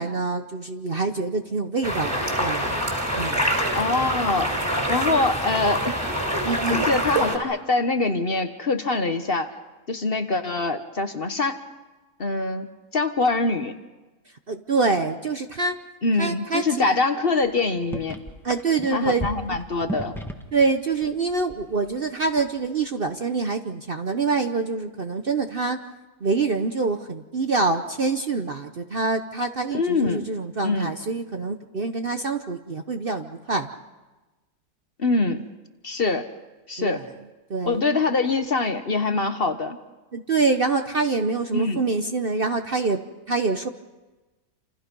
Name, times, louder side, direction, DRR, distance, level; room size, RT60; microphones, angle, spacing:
voice 1, 0.0-3.4 6.4-6.9 14.5-15.7 16.2-16.9 18.4-19.3 20.5-25.8 26.2-33.7 36.8-37.0 37.5-37.8 40.1-43.0 43.3-43.7, right 4 dB, 40° right, 7 dB, 0.9 m, -25 dB
sound 1, 1.8-7.4, equal, 15° right, 4.1 m, -25 dB
voice 2, 3.7-4.5 4.9-6.0 6.7-9.5 9.9-11.6 12.2-12.7 12.9-13.7 16.0-18.2 18.9-20.2 29.7-30.3 30.6-30.9 35.0-35.4 35.8-36.3 36.7-37.1 37.7-39.8 41.5-41.8, left 3 dB, 40° left, 8 dB, 1.2 m, -24 dB
sound 2, 17.4-17.5 17.8-20.6 20.9-22.0 22.3-22.6, equal, ahead, 1.6 m, -35 dB
28.0 x 28.0 x 5.4 m, 1.2 s
omnidirectional pair, 1.7 m